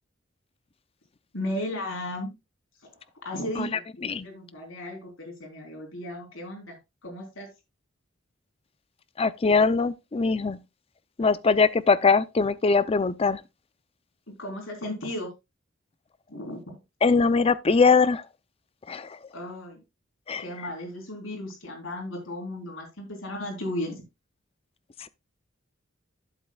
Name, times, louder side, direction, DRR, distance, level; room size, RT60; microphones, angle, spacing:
voice 1, 1.3-2.3 3.2-6.8 7.0-7.5 14.3-15.3 16.3-16.6 19.3-19.8 20.4-24.0, left 1 dB, 75° left, 3.7 m, -35 dB
voice 2, 9.2-10.6 11.2-13.4 17.0-18.2 18.9-19.2 20.3-20.5 25.0-25.1, left 4 dB, 30° left, 0.5 m, -22 dB
12.0 x 7.4 x 2.3 m
head